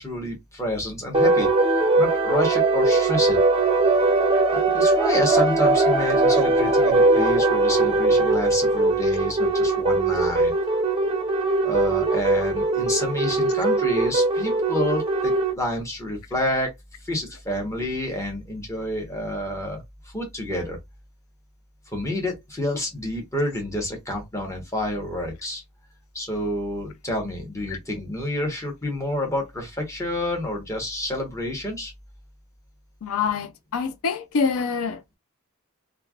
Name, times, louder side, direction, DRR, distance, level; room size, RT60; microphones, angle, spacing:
voice 1, 0.0-1.5 2.0-3.4 4.5-10.5 11.6-16.7 17.0-19.8 20.1-20.8 21.9-25.6 26.1-31.9, left 1 dB, 15° left, 1.1 m, -29 dB
sound 1, 1.1-15.5, right 2 dB, 25° right, 0.5 m, -20 dB
voice 2, 33.0-35.2, left 5 dB, 70° left, 0.4 m, -26 dB
3.2 x 2.4 x 2.3 m
head